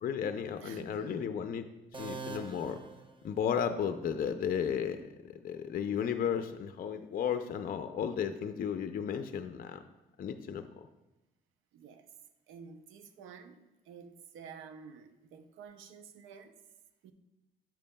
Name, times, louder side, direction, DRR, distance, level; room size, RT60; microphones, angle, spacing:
voice 1, 0.0-1.7 2.0-2.8 3.2-5.0 5.4-9.8 10.2-10.9, left 8 dB, 45° left, 8 dB, 0.5 m, -34 dB
voice 2, 0.6-1.3 11.7-12.1 12.5-16.5 17.0-17.1, right 6 dB, 85° right, 9 dB, 0.6 m, -51 dB
sound 1, 1.9-3.8, right 4 dB, 25° right, 0.8 m, -44 dB
8.9 x 7.1 x 2.2 m, 1.0 s
cardioid pair, 90°, 20 cm